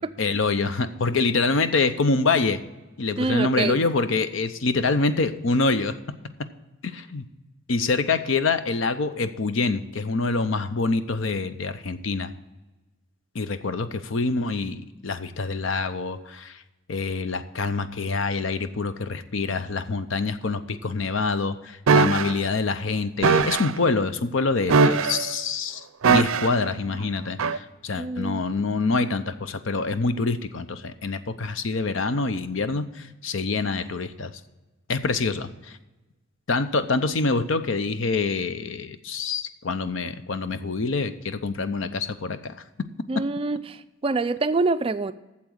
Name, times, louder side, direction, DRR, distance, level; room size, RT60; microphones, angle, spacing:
voice 1, 0.2-2.6 3.0-5.9 6.8-7.2 7.7-12.3 13.3-16.6 16.9-25.8 26.1-34.3 34.9-35.5 36.5-42.5, left 3 dB, 65° left, 11 dB, 0.7 m, -26 dB
voice 2, 3.2-3.9 28.0-28.4 43.1-45.1, right 3 dB, 25° right, 12 dB, 0.3 m, -26 dB
sound 1, 21.9-22.3 23.2-23.7 24.7-25.3 26.0-26.6 27.4-27.6, right 4 dB, 90° right, 0.5 m, -20 dB
8.5 x 7.3 x 7.8 m, 1.1 s
head